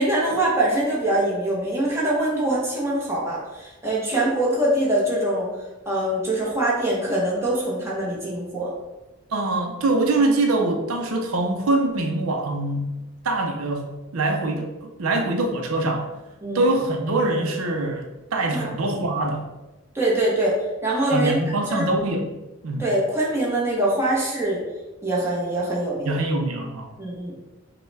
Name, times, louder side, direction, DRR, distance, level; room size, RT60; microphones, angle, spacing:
voice 1, 0.0-5.5 5.8-8.7 16.4-16.6 18.5-18.7 19.9-20.5 20.8-21.4 21.7-21.9 22.8-24.6 25.0-26.2 27.0-27.3, right 1 dB, 10° right, -5 dB, 1.0 m, -23 dB
voice 2, 9.3-12.9 13.2-16.1 16.5-19.4 21.1-22.4 22.6-22.9 26.1-26.9, right 2 dB, 90° right, 3 dB, 0.6 m, -24 dB
5.3 x 2.2 x 3.3 m, 1.1 s
head